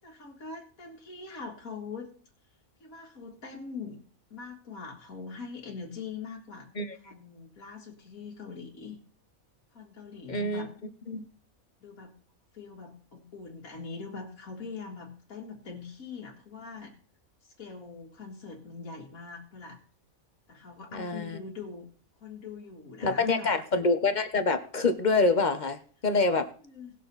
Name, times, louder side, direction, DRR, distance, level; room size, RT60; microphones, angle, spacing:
voice 1, 0.0-2.1 2.8-4.0 4.3-6.7 7.0-9.0 9.7-10.7 11.8-12.2 12.5-17.0 17.4-19.8 20.5-21.9 22.2-23.5 26.6-27.0, left 5 dB, 75° left, -2 dB, 2.2 m, -42 dB
voice 2, 10.3-10.7 11.1-11.2 20.9-21.4 23.0-26.5, left 3 dB, 35° left, 9 dB, 0.9 m, -26 dB
18.5 x 6.6 x 4.0 m, 0.43 s
omnidirectional pair, 1.5 m